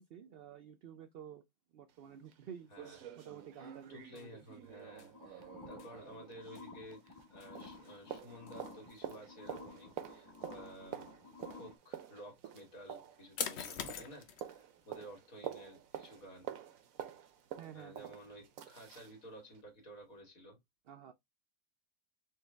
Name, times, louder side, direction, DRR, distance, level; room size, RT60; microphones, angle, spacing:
voice 1, 0.0-1.4 1.7-2.7 3.2-4.4 17.6-18.1 20.9-21.1, right 8 dB, 60° right, 0.6 m, -51 dB
sound 1, 1.9-2.0 2.3-2.4 2.7-7.3 7.6-19.2 19.5-19.6, right 10 dB, 80° right, 1.1 m, -48 dB
sound 2, 3.2-20.2, left 8 dB, 60° left, 0.8 m, -51 dB
voice 2, 3.6-16.5 17.7-20.6, right 1 dB, 90° left, 2.3 m, -53 dB
sound 3, 5.1-11.7, left 4 dB, 20° left, 0.7 m, -53 dB
4.5 x 2.7 x 3.4 m
omnidirectional pair, 1.4 m